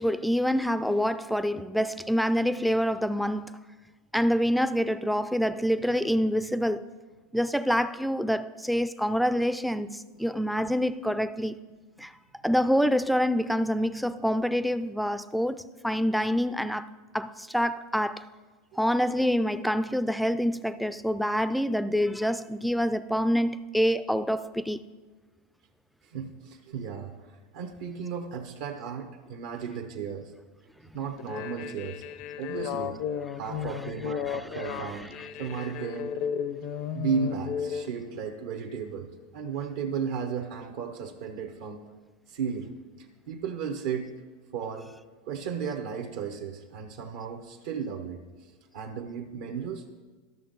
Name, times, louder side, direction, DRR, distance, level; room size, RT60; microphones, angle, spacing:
voice 1, 0.0-3.5 4.1-6.9 7.3-11.5 12.0-12.1 12.4-16.9 17.1-18.3 18.8-24.8 32.6-32.7 33.5-35.7, equal, ahead, 0.3 m, -27 dB
voice 2, 26.0-30.3 30.9-32.0 32.4-33.0 33.4-35.1 35.4-36.2 36.9-41.8 42.3-42.7 43.0-44.1 44.5-44.9 45.3-48.2 48.7-49.9, right 6 dB, 70° right, 0.8 m, -34 dB
sound 1, 31.2-37.9, left 8 dB, 60° left, 0.5 m, -34 dB
12.0 x 6.4 x 3.9 m
hypercardioid pair, 110°, 0 cm